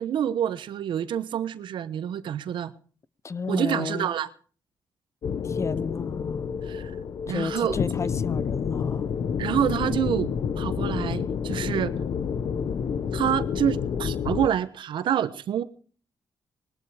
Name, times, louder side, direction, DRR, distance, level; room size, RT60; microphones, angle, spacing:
voice 1, 0.0-2.7 3.5-4.3 6.7-6.9 7.3-7.8 9.4-10.3 10.6-11.9 13.1-15.6, right 10 dB, 85° right, 1.2 m, -27 dB
voice 2, 3.2-4.1 5.4-6.5 7.3-9.1, left 5 dB, 35° left, 0.8 m, -32 dB
sound 1, 5.2-14.5, left 7 dB, 65° left, 1.0 m, -29 dB
20.0 x 12.5 x 5.0 m
cardioid pair, 85°, 8 cm